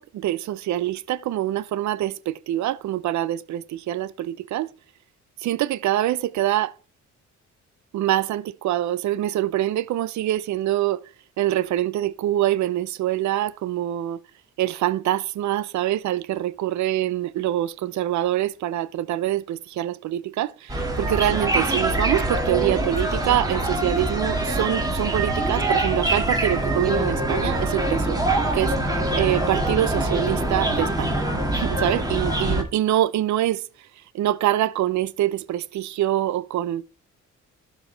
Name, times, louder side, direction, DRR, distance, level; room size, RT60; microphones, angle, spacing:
voice 1, 0.0-4.7 5.4-6.7 7.9-11.0 11.4-14.2 14.6-28.3 28.5-28.8 29.2-31.1 31.5-33.6 34.1-36.8, right 13 dB, 70° right, 0.6 m, -25 dB
sound 1, 20.7-32.6, right 1 dB, 10° right, 2.1 m, -24 dB
12.0 x 4.6 x 3.3 m
cardioid pair, 90°, 30 cm